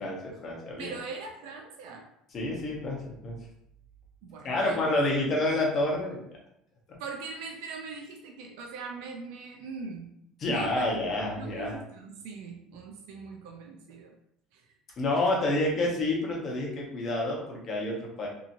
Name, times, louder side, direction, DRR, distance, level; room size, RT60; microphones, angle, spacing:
voice 1, 0.0-0.9 2.3-3.4 4.4-6.2 6.9-7.0 10.4-11.8 15.0-18.3, left 2 dB, 35° left, -2 dB, 0.9 m, -28 dB
voice 2, 0.8-2.1 4.2-4.9 7.0-10.1 10.5-10.9 11.4-14.1 14.5-14.7, right 4 dB, 80° right, 1 dB, 0.4 m, -41 dB
2.8 x 2.7 x 2.6 m, 0.75 s
cardioid pair, 140°, 0 cm